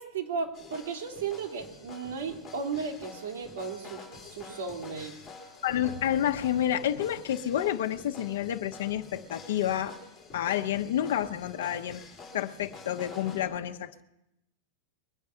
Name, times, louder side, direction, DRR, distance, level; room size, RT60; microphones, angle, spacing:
voice 1, 0.0-5.1, right 5 dB, 75° right, 2 dB, 2.7 m, -35 dB
sound 1, 0.5-13.4, left 3 dB, 15° left, 3.6 m, -48 dB
voice 2, 5.6-10.0 10.3-12.0 12.3-14.0, left 11 dB, 75° left, 5 dB, 0.9 m, -29 dB
22.0 x 9.3 x 5.7 m, 0.88 s
supercardioid pair, 170°, 0 cm